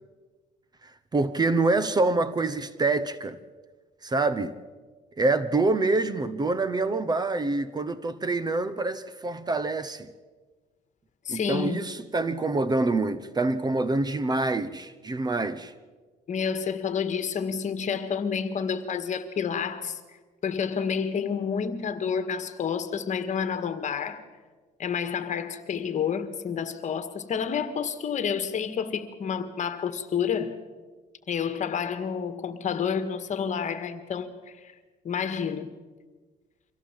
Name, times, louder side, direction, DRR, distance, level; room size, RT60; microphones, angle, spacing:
voice 1, 1.1-3.4 4.0-4.5 5.2-10.1 11.3-15.7, right 3 dB, 25° right, 1.0 m, -26 dB
voice 2, 11.3-11.9 16.3-20.0 20.4-24.2 24.8-30.5 31.3-34.7 35.0-35.7, left 7 dB, 45° left, 1.9 m, -29 dB
24.5 x 16.5 x 7.5 m
cardioid pair, 110°, 17 cm